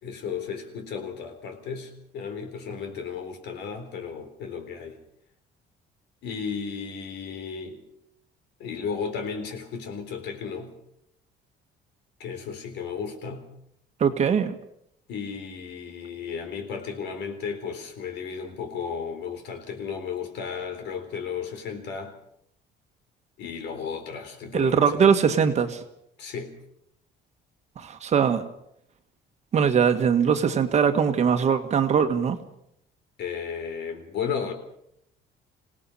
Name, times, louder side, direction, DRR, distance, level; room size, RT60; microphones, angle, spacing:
voice 1, 0.0-5.0 6.2-7.8 8.6-10.7 12.2-13.4 15.1-22.1 23.4-25.0 26.2-26.5 33.2-34.5, left 6 dB, 70° left, 6 dB, 3.9 m, -34 dB
voice 2, 14.0-14.6 24.5-25.8 27.8-28.4 29.5-32.4, right 7 dB, 35° right, 7 dB, 1.6 m, -21 dB
26.5 x 18.0 x 5.7 m, 0.75 s
cardioid pair, 160°, 19 cm